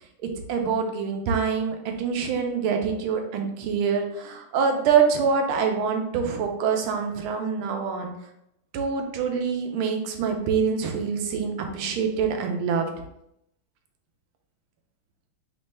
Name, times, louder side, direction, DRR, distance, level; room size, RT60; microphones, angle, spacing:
voice 1, 0.5-8.1 8.7-12.9, right 6 dB, 80° right, 4 dB, 1.5 m, -25 dB
4.3 x 3.1 x 3.2 m, 0.78 s
omnidirectional pair, 2.4 m